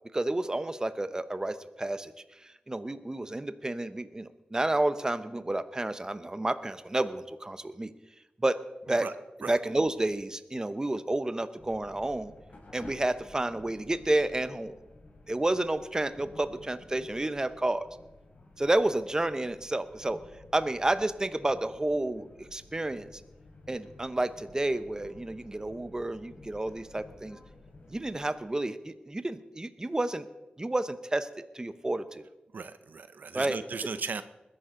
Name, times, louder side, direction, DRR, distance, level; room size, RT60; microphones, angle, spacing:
voice 1, 0.1-2.1 2.4-7.9 8.4-8.6 8.9-9.1 9.5-12.3 12.7-14.7 15.3-17.8 18.6-20.2 20.5-23.2 23.7-27.4 27.9-30.3 30.6-31.3 31.5-32.2 33.3-33.6, right 2 dB, 20° right, 12 dB, 0.8 m, -30 dB
sound 1, 11.6-28.3, left 2 dB, 55° left, 3.4 m, -53 dB
voice 2, 32.5-34.2, right 5 dB, 70° right, 12 dB, 0.6 m, -36 dB
20.5 x 11.0 x 3.8 m, 1.0 s
wide cardioid pair, 75°, 3 cm